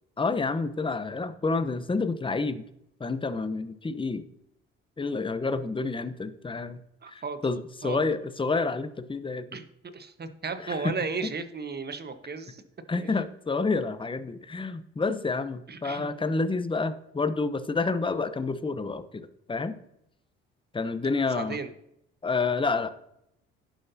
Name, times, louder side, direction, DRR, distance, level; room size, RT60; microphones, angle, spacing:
voice 1, 0.2-2.6 3.0-4.2 5.0-6.8 7.1-9.6 10.6-10.9 11.2-11.3 12.9-19.8 20.7-21.6 22.2-22.9, left 3 dB, 15° left, 11 dB, 0.9 m, -29 dB
voice 2, 7.0-7.4 7.8-8.0 9.5-9.6 9.9-12.6 12.9-13.1 15.7-16.1 21.3-21.7, right 4 dB, 35° right, 9 dB, 1.3 m, -34 dB
17.0 x 5.8 x 2.8 m, 0.79 s
hypercardioid pair, 55°, 30 cm